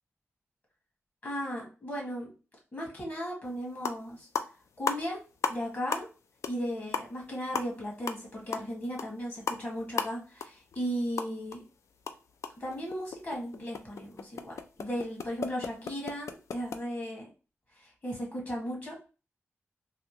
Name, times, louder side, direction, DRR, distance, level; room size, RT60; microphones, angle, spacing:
voice 1, 1.2-2.3 2.7-4.3 4.8-5.2 5.5-6.1 6.5-11.6 12.6-17.2 17.7-19.0, equal, 40° left, -2 dB, 1.7 m, -36 dB
sound 1, 3.4-3.5 3.8-4.1 4.3-5.6 5.9-6.2 6.4-6.6 6.9-11.6 11.9-16.8, left 5 dB, 85° left, 0.4 m, -36 dB
3.4 x 2.8 x 3.0 m, 0.33 s
wide cardioid pair, 115°, 5 cm